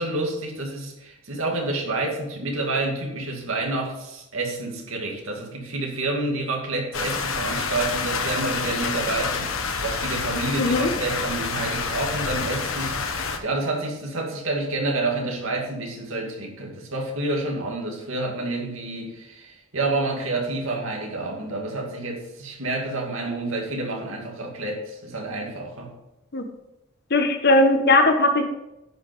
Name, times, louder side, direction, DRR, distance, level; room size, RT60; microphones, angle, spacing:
voice 1, 0.0-25.9, right 2 dB, 75° right, 0 dB, 2.3 m, -29 dB
sound 1, 6.9-13.4, left 4 dB, 80° left, 1.1 m, -28 dB
voice 2, 10.6-10.9 26.3-26.4 27.1-28.4, left 2 dB, 50° left, 5 dB, 1.2 m, -18 dB
10.5 x 5.6 x 5.3 m, 0.90 s
head